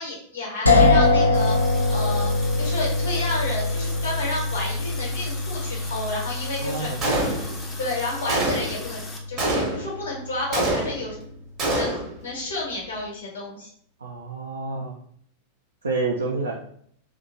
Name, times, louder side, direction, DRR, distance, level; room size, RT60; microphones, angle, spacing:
voice 1, 0.0-1.6 1.9-6.9 7.8-9.0 9.3-11.2 11.7-13.7, left 2 dB, 65° left, -3 dB, 1.1 m, -31 dB
sound 1, 0.7-10.4, left 2 dB, 80° left, 0.4 m, -24 dB
Water tap faucet, 1.3-9.2, left 2 dB, 15° left, 0.5 m, -40 dB
voice 2, 6.6-7.3 14.0-14.9 15.8-16.5, right 3 dB, 75° right, -3 dB, 0.3 m, -28 dB
Gunshot gunfire, 7.0-7.7 8.3-8.9 9.4-10.0 10.5-11.2 11.6-12.2, right 1 dB, 30° right, 0.7 m, -25 dB
2.8 x 2.2 x 2.6 m, 0.63 s
figure-of-eight pair, 90°, 0 cm